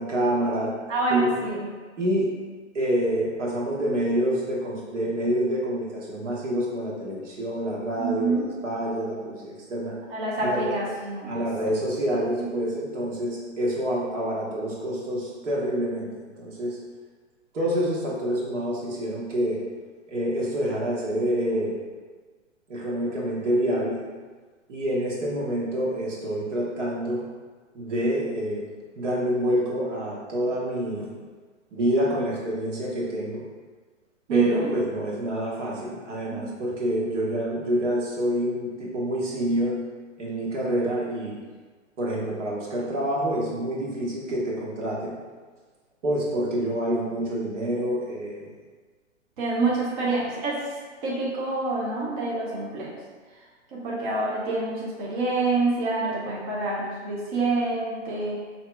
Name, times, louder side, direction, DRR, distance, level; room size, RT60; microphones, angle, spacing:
voice 1, 0.0-0.7 1.1-1.4 2.0-2.3 2.7-10.0 10.4-10.8 11.3-16.8 17.5-19.6 20.1-21.8 22.7-24.0 24.7-27.2 27.7-28.6 29.0-31.1 31.7-33.4 34.3-39.8 40.2-41.4 42.0-45.2 46.0-48.5, equal, 70° right, -4 dB, 1.2 m, -27 dB
voice 2, 0.9-1.7 8.0-8.4 10.1-11.3 34.3-34.7 36.3-36.5 49.4-50.6 51.0-53.0 53.7-58.4, right 3 dB, 40° right, -5 dB, 1.0 m, -27 dB
5.5 x 2.8 x 2.2 m, 1.4 s
hypercardioid pair, 130°, 38 cm